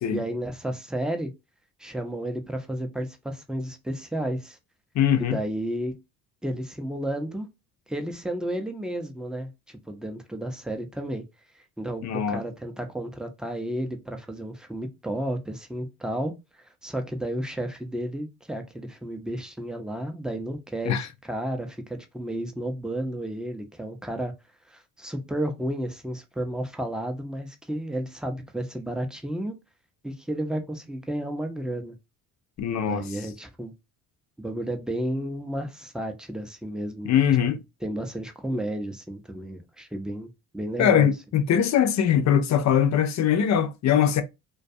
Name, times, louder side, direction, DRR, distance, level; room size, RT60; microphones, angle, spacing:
voice 1, 0.1-1.3 1.8-4.6 5.2-6.0 6.4-7.5 7.9-11.2 11.8-24.3 24.7-29.5 30.0-32.0 32.8-33.7 34.4-37.1 37.8-41.1, right 1 dB, ahead, 0.5 m, -32 dB
voice 2, 4.9-5.4 12.0-12.4 20.9-21.1 32.6-33.0 37.0-37.6 40.8-44.2, left 9 dB, 50° left, 0.5 m, -22 dB
2.2 x 2.2 x 2.6 m
supercardioid pair, 85°, 37 cm